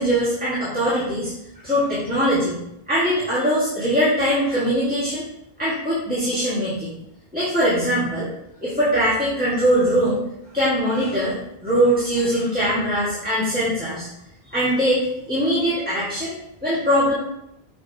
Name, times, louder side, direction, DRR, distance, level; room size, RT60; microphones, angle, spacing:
voice 1, 0.0-1.3 1.6-2.6 2.9-5.3 5.6-6.9 7.3-8.3 8.6-10.2 10.5-14.1 14.5-16.3 16.6-17.1, equal, 10° right, -11 dB, 2.0 m, -21 dB
6.5 x 5.9 x 2.9 m, 0.78 s
omnidirectional pair, 1.1 m